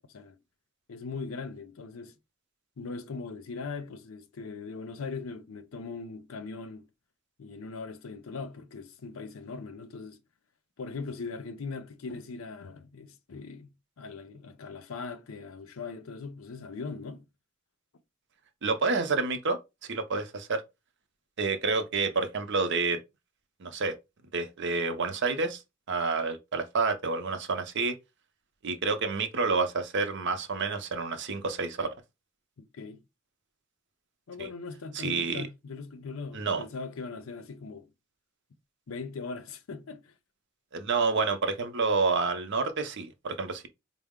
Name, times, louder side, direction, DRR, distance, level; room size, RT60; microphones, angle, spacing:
voice 1, 0.9-2.1 2.8-6.9 7.4-10.2 10.8-17.2 32.6-33.0 34.3-37.9 38.9-40.1, left 4 dB, 75° left, 0.5 m, -40 dB
voice 2, 18.6-19.6 19.9-20.6 21.4-23.0 23.6-23.9 24.3-25.6 25.9-27.9 28.6-31.9 34.4-34.5 34.9-35.5 36.3-36.6 40.7-43.7, right 4 dB, 60° right, 0.6 m, -29 dB
4.4 x 2.0 x 3.6 m
head